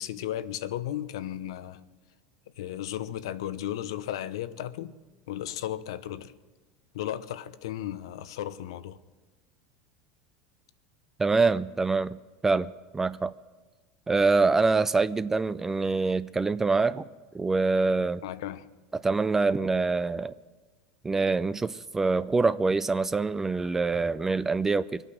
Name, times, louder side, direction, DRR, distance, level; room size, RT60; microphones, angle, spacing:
voice 1, 0.0-1.8 2.6-4.9 5.3-6.3 6.9-9.0 18.2-18.7, left 12 dB, 85° left, 0.8 m, -35 dB
voice 2, 11.2-12.2 12.4-13.3 14.1-17.0 17.3-18.2 18.9-20.3 21.0-25.0, right 3 dB, 15° right, 0.4 m, -25 dB
24.0 x 8.9 x 6.4 m
supercardioid pair, 110°, 3 cm